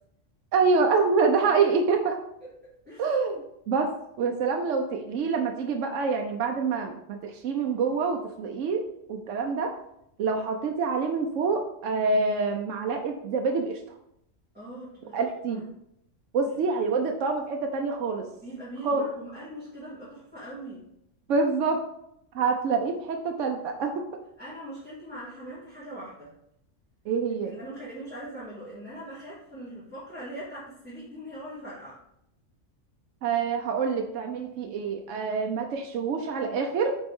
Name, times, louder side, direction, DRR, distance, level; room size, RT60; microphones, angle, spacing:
voice 1, 0.5-2.2 3.0-3.9 4.2-9.8 10.2-13.8 15.1-15.6 16.3-18.3 18.8-19.0 21.3-21.8 22.3-23.9 27.1-27.5 33.2-36.9, right 4 dB, 80° right, 3 dB, 1.0 m, -26 dB
voice 2, 2.8-3.2 14.5-15.6 18.4-20.8 24.4-26.3 27.4-32.0, right 1 dB, 10° right, -11 dB, 2.4 m, -41 dB
7.7 x 4.1 x 3.6 m, 0.78 s
omnidirectional pair, 1.3 m